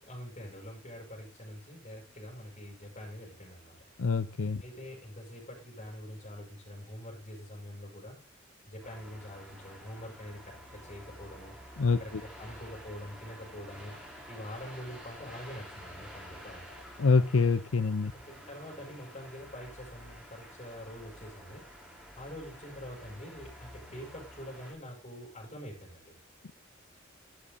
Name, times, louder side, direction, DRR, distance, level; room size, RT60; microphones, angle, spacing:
voice 1, 0.0-3.8 4.6-8.2 8.7-11.5 12.0-16.7 18.1-21.7 22.2-26.2, equal, 35° left, -1 dB, 7.3 m, -45 dB
voice 2, 4.0-4.6 11.8-12.0 17.0-18.1, left 4 dB, 80° left, 11 dB, 0.6 m, -25 dB
sound 1, 8.8-24.7, equal, 5° right, 4.8 m, -50 dB
12.0 x 8.8 x 4.0 m, 0.30 s
head